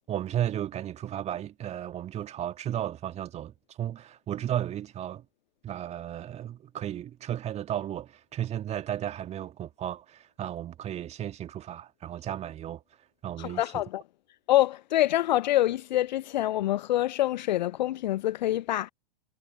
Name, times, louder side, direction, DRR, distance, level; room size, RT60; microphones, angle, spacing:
voice 1, 0.1-5.2 5.6-12.8 13.2-13.8, right 11 dB, 20° right, 2.1 m, -34 dB
voice 2, 13.4-14.0 14.5-18.9, left 14 dB, 50° left, 0.8 m, -26 dB
figure-of-eight pair, 105°, 30 cm